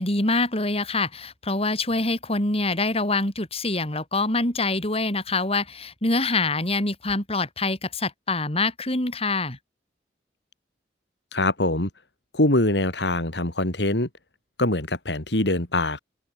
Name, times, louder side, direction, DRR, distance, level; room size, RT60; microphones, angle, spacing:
voice 1, 0.0-9.6, left 2 dB, 35° left, 7.3 m, -25 dB
voice 2, 11.3-11.9 12.3-14.1 14.6-16.0, left 1 dB, 80° left, 4.1 m, -23 dB
open air
head